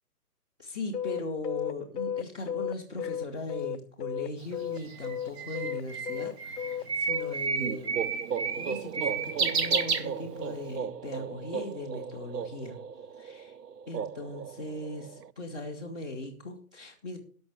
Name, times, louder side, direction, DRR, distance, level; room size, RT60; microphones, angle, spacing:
voice 1, 0.6-7.9 8.5-12.8 13.2-13.6 13.9-17.2, left 2 dB, 5° right, -2 dB, 0.7 m, -39 dB
sound 1, 0.9-4.3 4.5-7.4, left 9 dB, 85° left, 0.7 m, -34 dB
Bird, 4.4-10.7, right 5 dB, 40° right, 1.6 m, -31 dB
sound 2, 7.6-15.3, right 7 dB, 85° right, 0.7 m, -37 dB
13.0 x 6.1 x 6.5 m, 0.44 s
hypercardioid pair, 160°, 47 cm